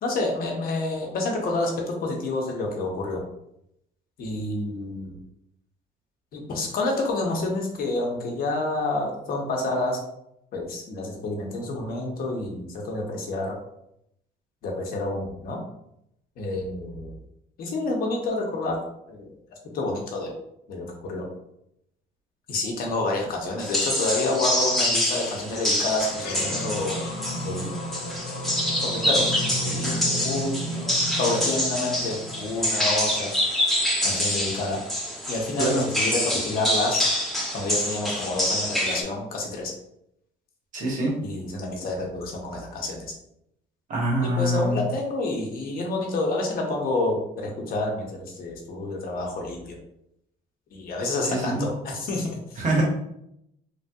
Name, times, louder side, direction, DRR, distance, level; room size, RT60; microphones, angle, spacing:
voice 1, 0.0-3.2 4.2-5.2 6.3-10.0 10.5-13.6 14.6-15.6 16.4-17.1 17.6-18.8 19.1-19.4 19.7-20.3 20.7-21.3 22.5-27.0 27.4-27.7 28.8-33.3 34.0-34.8 35.3-37.1 37.5-39.7 41.2-43.1 44.2-49.8 50.7-52.6, left 2 dB, 60° left, 1 dB, 0.8 m, -28 dB
sound 1, 23.6-39.0, equal, ahead, 0.6 m, -26 dB
sound 2, 26.1-32.8, equal, 85° left, 0.6 m, -33 dB
voice 2, 40.7-41.1 43.9-44.8 51.3-51.6 52.6-52.8, right 1 dB, 50° right, -1 dB, 1.0 m, -24 dB
3.2 x 2.6 x 2.3 m, 0.78 s
cardioid pair, 110°, 17 cm